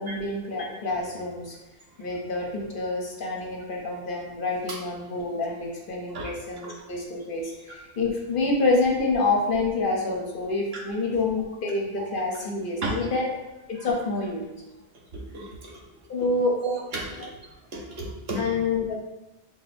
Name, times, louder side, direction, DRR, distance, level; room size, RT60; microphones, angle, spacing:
voice 1, 0.0-1.6 2.0-13.3 13.7-14.5 16.1-16.5 18.4-18.9, left 3 dB, 55° left, -1 dB, 0.8 m, -27 dB
voice 2, 14.9-15.8 16.2-16.3 16.6-18.6, right 2 dB, 65° right, -2 dB, 1.0 m, -34 dB
5.9 x 2.2 x 2.5 m, 1.0 s
omnidirectional pair, 1.1 m